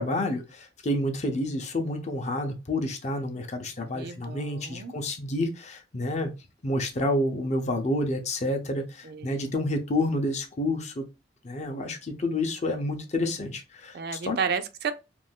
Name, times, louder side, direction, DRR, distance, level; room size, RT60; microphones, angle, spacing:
voice 1, 0.0-6.3 6.6-11.0 11.4-14.4, left 1 dB, 40° left, 0.6 m, -29 dB
voice 2, 3.9-4.9 9.0-9.5 13.9-14.9, right 6 dB, 60° right, 0.4 m, -32 dB
2.5 x 2.3 x 3.5 m
head